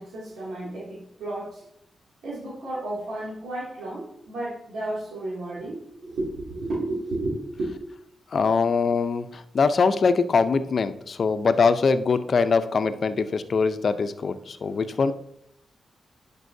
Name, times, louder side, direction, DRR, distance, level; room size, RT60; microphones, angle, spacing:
voice 1, 0.0-1.7 2.2-7.7, right 2 dB, 80° right, -8 dB, 2.5 m, -32 dB
voice 2, 8.3-15.1, left 5 dB, 60° left, 11 dB, 0.6 m, -22 dB
11.0 x 5.4 x 2.7 m, 0.74 s
cardioid pair, 60°, 0 cm